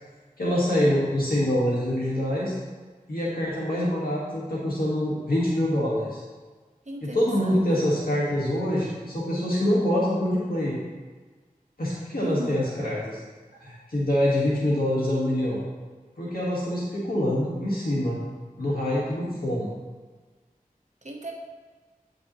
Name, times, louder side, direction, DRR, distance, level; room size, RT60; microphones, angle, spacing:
voice 1, 0.4-2.6 3.1-6.2 7.0-10.8 11.8-13.2 13.6-15.6 16.2-18.2 18.6-19.7, left 1 dB, 80° left, -7 dB, 1.4 m, -25 dB
voice 2, 6.8-7.7 12.2-12.7 21.0-21.3, right 1 dB, 50° right, -1 dB, 1.1 m, -36 dB
9.2 x 5.4 x 2.9 m, 1.4 s
wide cardioid pair, 50°, 15 cm